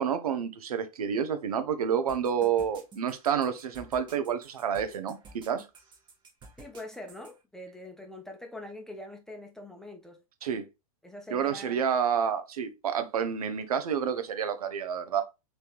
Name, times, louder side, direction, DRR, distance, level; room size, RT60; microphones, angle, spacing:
voice 1, 0.0-5.7 10.4-10.7 11.3-15.3, right 7 dB, 85° right, 0.6 m, -29 dB
sound 1, 2.1-7.3, right 3 dB, 25° right, 1.0 m, -51 dB
voice 2, 6.6-10.2 11.0-11.8, left 1 dB, 5° left, 0.7 m, -43 dB
3.2 x 3.0 x 2.4 m
hypercardioid pair, 110°, 19 cm